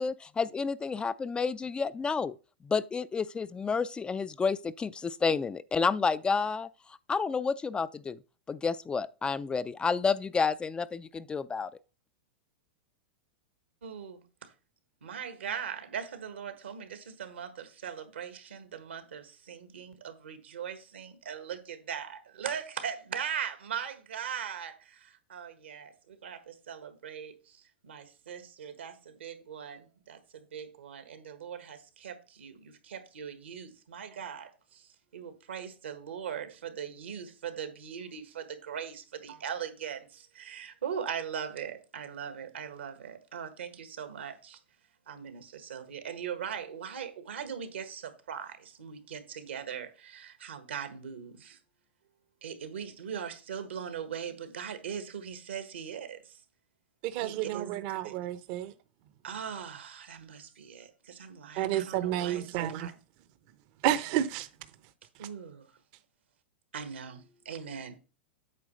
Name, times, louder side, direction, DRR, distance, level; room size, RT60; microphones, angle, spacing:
voice 1, 0.0-2.3 2.6-6.7 7.1-8.2 8.5-11.7, left 5 dB, 15° left, 0.3 m, -30 dB
voice 2, 13.8-14.2 15.0-44.6 45.1-51.6 52.4-56.4 57.2-57.7 58.0-58.1 59.2-62.9 65.2-65.7 66.7-68.0, right 8 dB, 80° right, 1.5 m, -40 dB
voice 3, 57.1-58.7 61.6-62.9 63.8-64.5, right 12 dB, 50° right, 0.7 m, -30 dB
8.6 x 3.0 x 6.4 m
hypercardioid pair, 105°, 6 cm